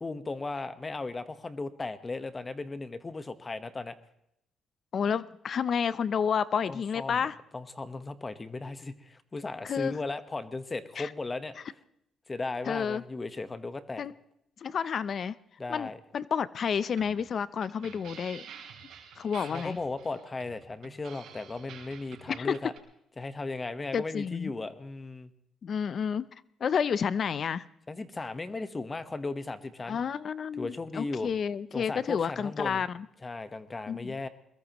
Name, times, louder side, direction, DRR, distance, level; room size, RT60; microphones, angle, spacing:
voice 1, 0.0-3.9 6.7-7.3 7.5-11.5 12.3-14.0 15.6-16.0 19.4-22.7 23.2-25.3 27.9-30.0 30.6-31.3 31.7-32.8 33.2-34.3, left 3 dB, 25° left, 11 dB, 1.2 m, -36 dB
voice 2, 4.9-7.4 9.6-9.9 11.0-11.1 12.7-13.0 14.0-14.1 14.6-15.3 15.7-18.5 19.2-19.8 22.3-22.6 23.9-24.5 25.6-26.3 26.6-27.6 29.9-33.1 33.9-34.2, left 7 dB, 55° left, 17 dB, 0.6 m, -30 dB
sound 1, 16.9-22.8, right 7 dB, 80° right, 3.9 m, -49 dB
22.5 x 21.0 x 3.0 m, 0.76 s
cardioid pair, 90°, 0 cm